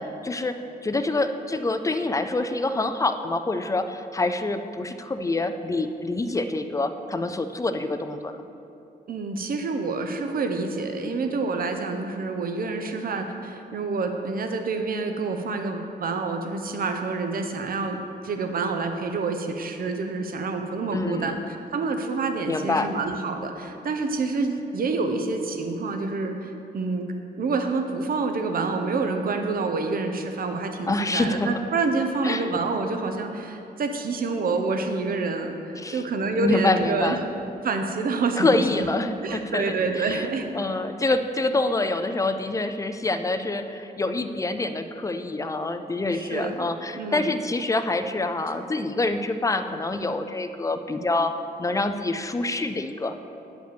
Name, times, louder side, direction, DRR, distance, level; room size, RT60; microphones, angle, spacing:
voice 1, 0.0-8.4 20.9-21.3 22.5-22.9 30.8-31.5 32.2-32.5 35.8-36.0 36.4-37.2 38.4-40.3 40.5-51.3 51.6-53.3, left 2 dB, 20° left, 8 dB, 0.4 m, -26 dB
voice 2, 9.1-21.4 21.7-27.1 27.4-37.2 37.6-38.9 39.2-40.5 46.1-46.7 46.9-47.3, right 3 dB, 55° right, 5 dB, 0.7 m, -27 dB
9.2 x 5.1 x 6.8 m, 2.8 s
wide cardioid pair, 160°, 18 cm